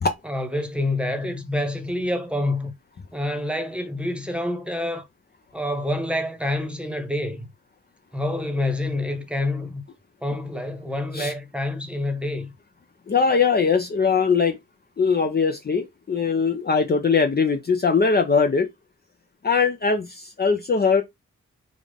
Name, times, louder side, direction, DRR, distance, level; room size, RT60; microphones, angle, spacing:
voice 1, 0.2-2.7 3.1-5.0 5.5-7.5 8.1-9.8 10.2-12.5, left 1 dB, 5° right, 1.1 m, -27 dB
voice 2, 13.1-14.6 15.0-18.7 19.4-21.0, left 5 dB, 30° left, 0.6 m, -21 dB
3.7 x 2.4 x 3.5 m
cardioid pair, 65°, 30 cm